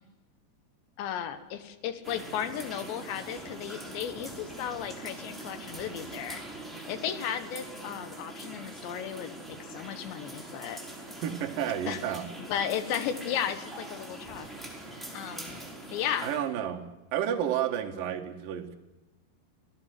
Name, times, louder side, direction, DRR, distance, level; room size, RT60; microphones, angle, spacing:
voice 1, 1.0-6.4 6.9-10.8 11.9-12.0 12.4-14.5 15.1-15.6 15.9-16.3, left 9 dB, 75° left, 10 dB, 3.6 m, -35 dB
sound 1, 2.0-16.4, right 2 dB, ahead, 4.3 m, -43 dB
voice 2, 11.2-12.2 16.2-18.7, right 9 dB, 60° right, 3 dB, 2.8 m, -31 dB
27.0 x 17.0 x 7.9 m, 1.1 s
omnidirectional pair, 5.3 m